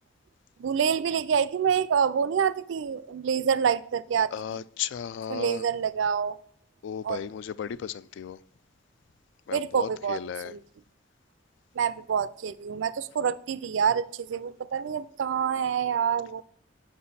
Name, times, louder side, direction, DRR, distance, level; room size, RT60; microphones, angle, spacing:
voice 1, 0.6-4.3 5.3-6.4 7.0-7.2 9.5-10.2 10.5-10.6 11.8-16.4, right 7 dB, 70° right, 0.4 m, -27 dB
voice 2, 4.3-5.7 6.8-8.4 9.5-10.6, left 8 dB, 65° left, 0.3 m, -35 dB
7.6 x 5.9 x 4.1 m
head